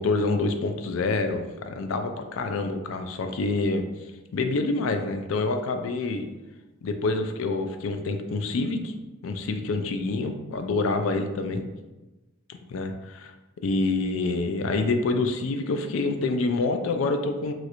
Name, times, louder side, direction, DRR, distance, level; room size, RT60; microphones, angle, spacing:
voice 1, 0.0-3.8 4.3-6.3 6.8-8.9 9.2-11.6 12.5-13.3 13.6-17.5, left 3 dB, 75° left, 6 dB, 0.4 m, -27 dB
3.1 x 2.4 x 2.9 m, 1.1 s
head